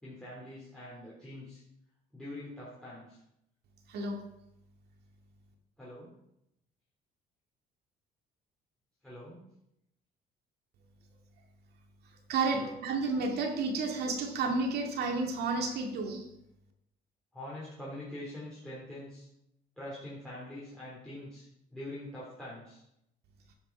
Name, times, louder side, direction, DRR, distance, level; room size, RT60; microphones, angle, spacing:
voice 1, 0.0-1.6 2.1-3.2 5.8-6.1 9.0-9.4 12.5-12.8 17.3-19.3 19.8-22.8, left 1 dB, 5° left, -8 dB, 3.5 m, -44 dB
voice 2, 3.9-4.2 12.3-16.3, right 3 dB, 70° right, 3 dB, 2.1 m, -31 dB
10.5 x 5.9 x 5.8 m, 0.81 s
cardioid pair, 110°, 17 cm